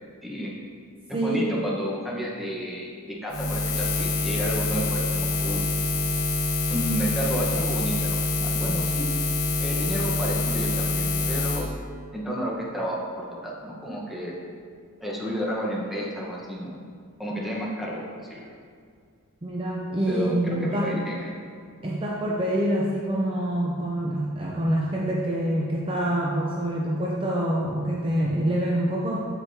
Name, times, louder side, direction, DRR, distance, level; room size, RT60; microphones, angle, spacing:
voice 1, 0.2-0.5 1.1-5.6 6.6-9.1 9.6-11.7 12.1-14.3 15.0-16.8 17.2-18.5 20.1-21.3, equal, ahead, -5 dB, 1.1 m, -31 dB
voice 2, 1.1-1.6 17.4-17.6 19.4-20.9 21.8-29.3, right 1 dB, 25° right, -3 dB, 0.6 m, -26 dB
Buzz, 3.3-11.6, left 2 dB, 80° left, 1.1 m, -26 dB
8.1 x 7.3 x 2.8 m, 2.2 s
head